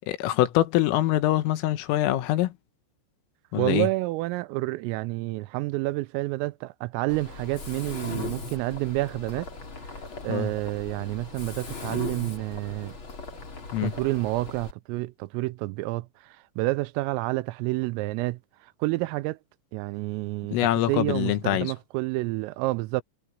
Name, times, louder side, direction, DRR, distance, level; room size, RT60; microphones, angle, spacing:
voice 1, 0.1-2.5 3.5-3.9 10.3-10.5 13.7-13.9 20.5-21.7, left 14 dB, 85° left, 3.9 m, -24 dB
voice 2, 3.6-9.5 9.9-13.0 13.8-19.4 19.7-23.0, right 21 dB, 90° right, 3.3 m, -29 dB
Mechanisms, 7.1-14.7, left 3 dB, 30° left, 3.4 m, -39 dB
omnidirectional pair, 5.9 m